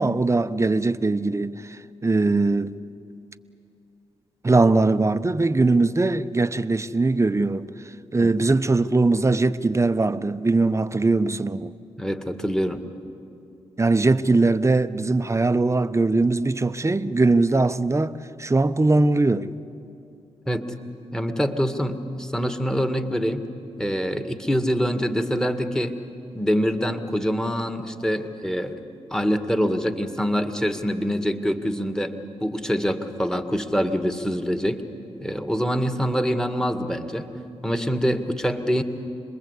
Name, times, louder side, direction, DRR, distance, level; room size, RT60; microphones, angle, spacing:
voice 1, 0.0-2.7 4.4-7.7 8.1-11.7 13.8-18.1 18.4-19.5, right 3 dB, 25° right, 0.9 m, -21 dB
voice 2, 12.0-12.8 20.5-20.7 21.1-23.4 23.8-25.9 26.3-28.8 29.1-32.2 32.4-34.8 35.2-37.3 37.6-38.8, equal, 5° left, 2.0 m, -25 dB
26.5 x 21.0 x 8.3 m
supercardioid pair, 45°, 12 cm